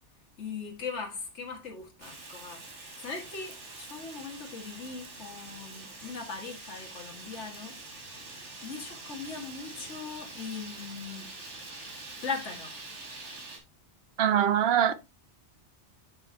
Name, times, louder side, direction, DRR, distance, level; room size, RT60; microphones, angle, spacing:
voice 1, 0.4-7.8 8.6-11.3 12.2-12.8, left 5 dB, 75° left, 2.0 m, -39 dB
Fire, 2.0-13.6, right 3 dB, 80° right, 2.0 m, -45 dB
voice 2, 14.2-14.9, right 9 dB, 60° right, 0.9 m, -23 dB
7.2 x 6.9 x 2.7 m
omnidirectional pair, 1.2 m